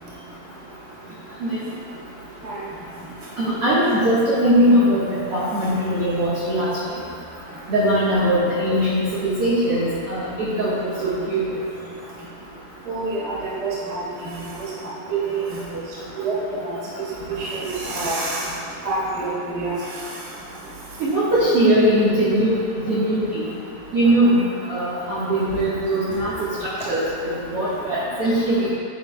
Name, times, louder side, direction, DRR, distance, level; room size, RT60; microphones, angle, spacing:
voice 1, 3.4-6.7 7.7-11.4 21.0-22.5 22.8-23.4 23.9-24.4 24.7-28.7, right 1 dB, 85° right, -9 dB, 1.3 m, -20 dB
voice 2, 12.9-13.3 13.6-14.0 14.5-14.6 15.1-15.4 16.1-16.7 17.3-18.4 18.8-19.7, right 3 dB, 30° right, -8 dB, 0.6 m, -26 dB
10.0 x 9.4 x 2.2 m, 2.3 s
omnidirectional pair, 4.7 m